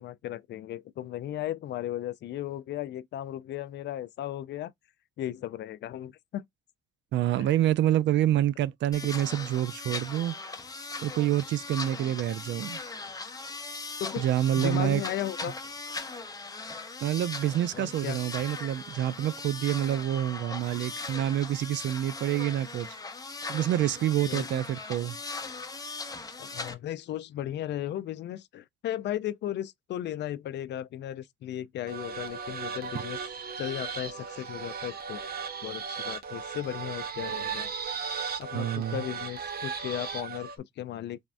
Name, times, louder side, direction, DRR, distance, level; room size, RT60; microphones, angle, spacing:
voice 1, 0.0-4.7 5.2-6.4 7.4-7.5 14.0-14.3 14.6-15.5 17.7-18.2 24.3-24.5 26.4-33.2 33.6-35.2 35.6-37.7 38.4-41.2, left 12 dB, 60° left, 0.4 m, -35 dB
voice 2, 7.1-10.3 11.0-12.8 14.2-15.0 15.4-15.5 17.0-22.9 23.5-25.2 38.5-39.0, right 12 dB, 65° right, 0.4 m, -27 dB
sound 1, 8.9-26.7, left 3 dB, 20° left, 0.6 m, -39 dB
sound 2, 31.9-40.6, right 6 dB, 50° right, 0.8 m, -36 dB
3.5 x 2.0 x 2.5 m
cardioid pair, 90°, 20 cm